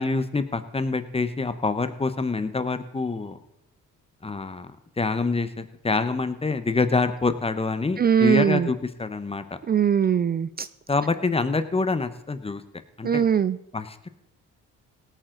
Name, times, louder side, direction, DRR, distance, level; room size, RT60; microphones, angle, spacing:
voice 1, 0.0-3.4 4.2-4.7 5.0-9.4 10.9-12.6 13.0-13.3 13.7-14.1, left 3 dB, 20° left, 11 dB, 1.0 m, -26 dB
voice 2, 8.0-8.7 9.7-10.7 13.0-13.6, right 8 dB, 30° right, 15 dB, 0.4 m, -21 dB
18.0 x 9.1 x 4.0 m, 0.80 s
cardioid pair, 90°, 30 cm